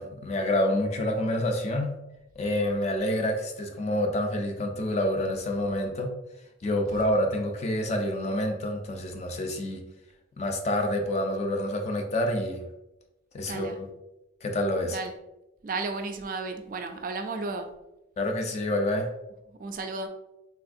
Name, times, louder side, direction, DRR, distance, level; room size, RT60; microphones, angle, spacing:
voice 1, 0.0-2.0 2.4-6.1 6.6-9.8 10.4-12.6 13.3-13.9 14.4-15.0 18.2-19.1, left 1 dB, 35° left, 4 dB, 0.4 m, -28 dB
voice 2, 13.5-13.8 14.8-15.1 15.6-17.7 19.6-20.1, right 3 dB, 45° right, 5 dB, 0.3 m, -34 dB
3.3 x 2.6 x 2.5 m, 0.94 s
head